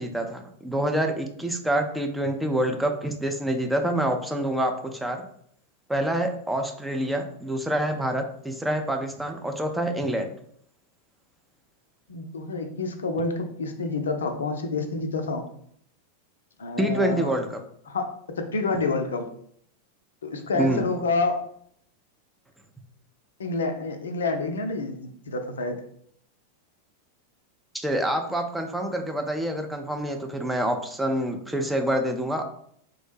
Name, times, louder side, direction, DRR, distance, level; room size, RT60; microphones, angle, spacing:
voice 1, 0.0-5.2 5.9-10.3 16.8-17.6 20.5-20.8 27.7-32.4, right 1 dB, 5° right, 3 dB, 0.4 m, -27 dB
voice 2, 12.1-15.5 16.6-17.3 17.9-18.1 18.4-19.3 20.2-21.4 23.4-25.8, left 3 dB, 65° left, 6 dB, 0.4 m, -28 dB
3.3 x 2.1 x 3.2 m, 0.66 s
figure-of-eight pair, 90°, 0 cm